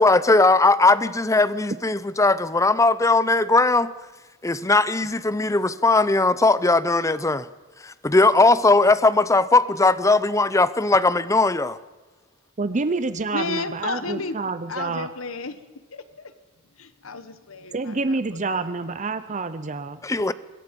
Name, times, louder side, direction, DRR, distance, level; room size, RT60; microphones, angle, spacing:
voice 1, 0.0-3.9 4.4-7.5 7.8-11.8 20.0-20.3, left 3 dB, 15° left, 0.6 m, -19 dB
voice 2, 12.6-15.1 17.7-20.0, right 3 dB, 35° right, 0.7 m, -27 dB
voice 3, 13.3-15.6 15.9-16.3 16.8-18.1 18.5-18.7, left 3 dB, 85° left, 1.2 m, -33 dB
24.5 x 21.0 x 5.3 m
head